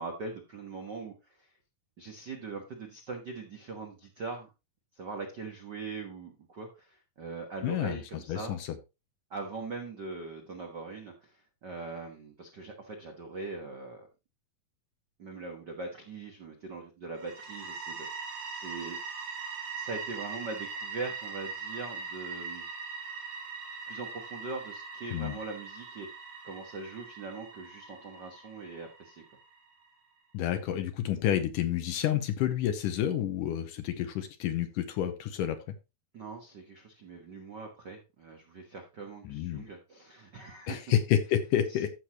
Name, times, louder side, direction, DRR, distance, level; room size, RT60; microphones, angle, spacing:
voice 1, 0.0-1.5 2.0-4.5 4.9-8.6 9.3-14.1 15.2-19.0 19.7-22.7 23.9-29.2 36.1-41.0 41.7-41.8, right 3 dB, 80° right, 3 dB, 0.9 m, -41 dB
voice 2, 7.6-8.0 8.3-8.6 25.1-25.4 30.3-35.6 39.2-39.6 40.7-41.9, left 10 dB, 75° left, 8 dB, 2.2 m, -29 dB
sound 1, 17.2-29.9, right 5 dB, 55° right, 3.0 m, -41 dB
13.5 x 6.5 x 3.0 m, 0.27 s
omnidirectional pair, 4.3 m